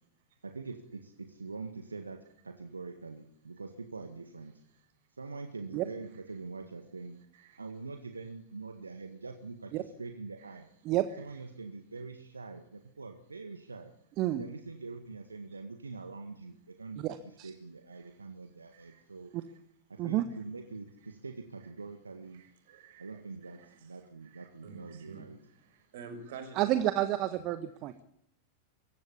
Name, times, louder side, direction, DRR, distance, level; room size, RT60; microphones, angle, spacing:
voice 1, 0.4-4.5 5.1-7.2 7.6-10.7 11.2-13.9 14.3-19.3 19.9-22.4 23.0-25.4, right 4 dB, 75° right, 1.7 m, -44 dB
voice 2, 17.0-17.5 20.0-20.2 26.6-27.9, right 14 dB, 40° right, 1.3 m, -29 dB
voice 3, 18.7-19.1 20.3-20.4 22.3-23.9 24.2-26.6, right 5 dB, 55° right, 6.2 m, -50 dB
24.0 x 15.0 x 8.6 m
figure-of-eight pair, 90°, 0 cm